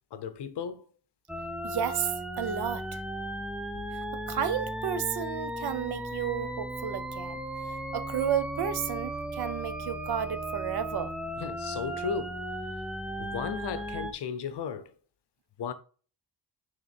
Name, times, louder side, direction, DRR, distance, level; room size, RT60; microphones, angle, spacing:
voice 1, 0.1-0.9 3.7-3.8 11.4-12.4 13.2-14.9 15.6-15.7, left 7 dB, 70° left, 0.8 m, -35 dB
sound 1, 1.3-14.1, right 1 dB, 5° right, 0.3 m, -36 dB
voice 2, 1.6-3.0 4.3-11.1, right 8 dB, 65° right, 0.7 m, -32 dB
6.1 x 3.7 x 4.3 m
wide cardioid pair, 180°, 42 cm